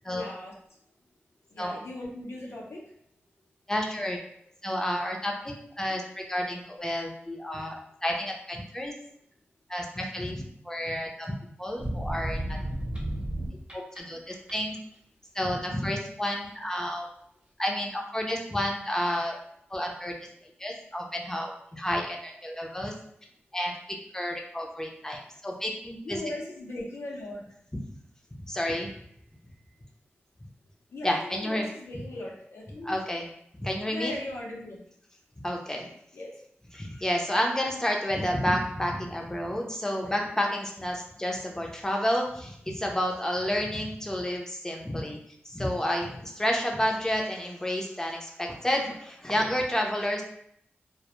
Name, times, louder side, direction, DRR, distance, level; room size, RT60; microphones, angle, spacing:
voice 1, 0.1-0.5 1.5-2.8 13.4-13.5 26.0-27.4 30.9-32.9 33.9-34.8 36.1-36.3, left 1 dB, 80° left, -2 dB, 0.6 m, -38 dB
voice 2, 3.7-4.2 4.6-8.9 9.7-11.3 11.6-12.6 13.7-14.8 15.3-17.1 17.6-19.3 19.7-20.1 20.6-22.9 23.5-23.7 24.1-26.2 27.7-27.8 28.4-28.9 31.0-31.7 31.9-32.0 32.8-33.3 33.6-34.1 35.4-35.9 36.7-45.2 45.4-50.2, equal, 15° left, 0 dB, 0.5 m, -30 dB
sound 1, 11.8-14.0 14.3-14.8, right 1 dB, 25° right, 0.7 m, -32 dB
2.1 x 2.0 x 2.9 m, 0.71 s
cardioid pair, 55°, 4 cm